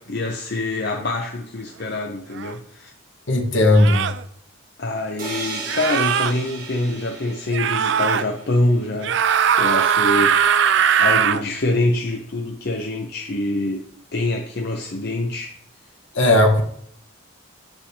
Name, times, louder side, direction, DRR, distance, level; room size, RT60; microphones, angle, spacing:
voice 1, 0.0-2.9 4.8-9.2 9.5-10.7 11.0-15.5, left 2 dB, 50° left, 1 dB, 0.7 m, -25 dB
sound 1, 2.4-2.5 3.7-4.2 5.7-6.3 7.5-8.2 9.0-11.4, right 7 dB, 60° right, 0.4 m, -19 dB
voice 2, 3.3-4.1 16.1-16.6, left 1 dB, 65° left, 2 dB, 1.2 m, -16 dB
sound 2, 5.2-9.0, right 3 dB, 40° right, 1.7 m, -35 dB
8.2 x 6.1 x 2.8 m, 0.66 s
head